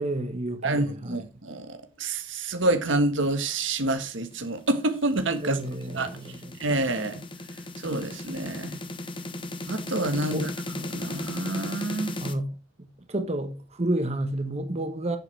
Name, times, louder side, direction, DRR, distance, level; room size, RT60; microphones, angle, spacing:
voice 1, 0.0-1.3 5.4-6.3 10.3-10.5 12.2-12.5 12.8-15.2, right 1 dB, 35° right, 1.2 m, -30 dB
voice 2, 0.6-5.6 5.9-6.2 6.6-7.2 7.8-8.8 9.7-12.1, right 2 dB, 85° right, 1.5 m, -28 dB
sound 1, 4.2-12.3, left 2 dB, 25° left, 1.0 m, -36 dB
10.5 x 7.7 x 3.4 m
head